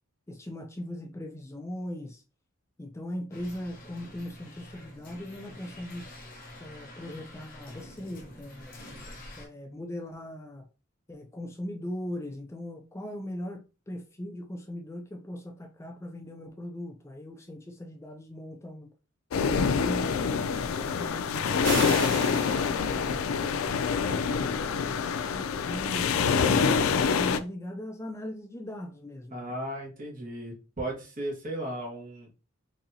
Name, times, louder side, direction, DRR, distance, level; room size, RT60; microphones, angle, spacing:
voice 1, 0.3-2.2 2.8-6.1 6.6-8.9 9.4-10.6 11.1-18.9 19.4-20.2 20.7-26.3 26.9-29.4, left 1 dB, 15° left, 0.4 m, -40 dB
sound 1, 3.3-9.5, left 1 dB, 45° left, 0.9 m, -47 dB
sound 2, 19.3-27.4, left 6 dB, 90° left, 0.4 m, -26 dB
sound 3, 21.6-23.2, right 1 dB, 70° right, 2.1 m, -34 dB
voice 2, 29.3-32.3, right 1 dB, 40° right, 1.3 m, -36 dB
4.1 x 2.7 x 2.7 m
head